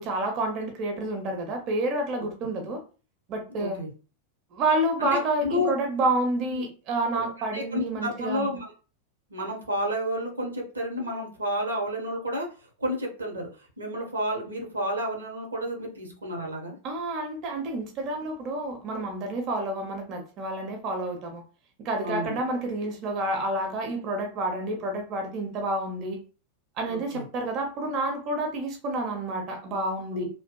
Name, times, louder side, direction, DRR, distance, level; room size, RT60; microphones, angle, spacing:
voice 1, 0.0-2.8 3.3-3.8 4.5-8.5 16.8-21.4 21.8-26.2 26.8-30.3, right 2 dB, 40° right, 3 dB, 0.5 m, -29 dB
voice 2, 3.5-3.9 5.0-5.7 6.5-6.6 7.1-7.3 7.5-8.7 9.3-12.5 12.8-13.5 13.8-16.8 22.0-22.4 26.9-27.2 30.1-30.3, equal, 75° right, 1 dB, 0.7 m, -31 dB
2.6 x 2.3 x 2.2 m, 0.35 s
figure-of-eight pair, 90°, 0 cm